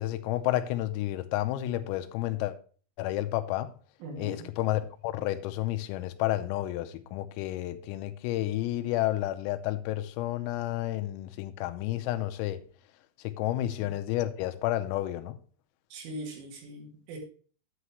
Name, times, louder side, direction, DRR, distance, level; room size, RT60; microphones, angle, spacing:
voice 1, 0.0-2.5 3.0-3.7 4.2-12.6 13.2-15.4, left 15 dB, 90° left, 3.4 m, -31 dB
voice 2, 4.0-4.5 13.8-13.9 15.9-17.2, right 1 dB, 75° right, 4.7 m, -41 dB
9.6 x 9.3 x 3.0 m
omnidirectional pair, 6.0 m